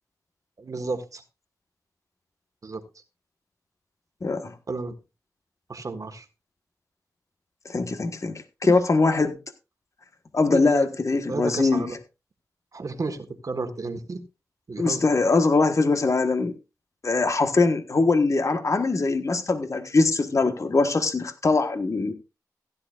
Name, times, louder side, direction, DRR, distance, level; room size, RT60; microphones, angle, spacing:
voice 1, 0.6-1.2 2.6-2.8 4.7-5.0 5.7-6.2 8.6-8.8 10.5-10.8 11.3-12.0 12.7-14.2 14.7-15.0, right 3 dB, 60° right, 1.5 m, -32 dB
voice 2, 4.2-4.5 7.7-8.3 8.6-9.4 10.3-11.9 14.8-16.5 17.0-22.1, left 3 dB, 50° left, 1.4 m, -22 dB
16.0 x 10.5 x 2.5 m
cardioid pair, 55°, 7 cm